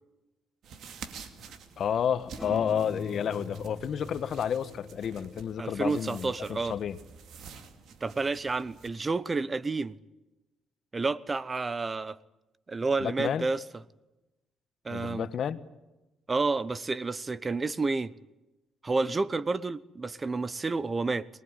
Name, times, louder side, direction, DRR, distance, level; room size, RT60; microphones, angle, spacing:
sound 1, 0.6-8.9, right 6 dB, 75° right, 2.5 m, -49 dB
voice 1, 1.8-7.0 13.0-13.5 14.9-15.6, left 8 dB, 65° left, 1.3 m, -31 dB
sound 2, 2.4-7.3, left 3 dB, 10° left, 7.4 m, -43 dB
voice 2, 5.6-6.8 8.0-10.0 10.9-12.2 12.7-13.6 14.8-15.3 16.3-18.1 18.8-21.3, right 3 dB, 30° right, 0.9 m, -30 dB
23.5 x 19.5 x 9.8 m
cardioid pair, 90°, 0 cm